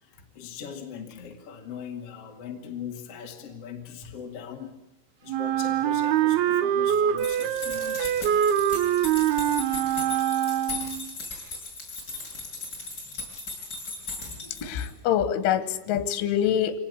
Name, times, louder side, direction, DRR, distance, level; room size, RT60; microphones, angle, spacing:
voice 1, 0.0-4.8 5.2-8.1, left 8 dB, 45° left, 2.2 m, -40 dB
Wind instrument woodwind instrument, 5.3-11.1, right 10 dB, 70° right, 2.6 m, -24 dB
sound 1, 7.2-14.9, left 3 dB, 20° left, 7.3 m, -37 dB
voice 2, 14.6-16.8, left 10 dB, 85° left, 3.8 m, -25 dB
24.5 x 19.0 x 9.7 m
omnidirectional pair, 5.5 m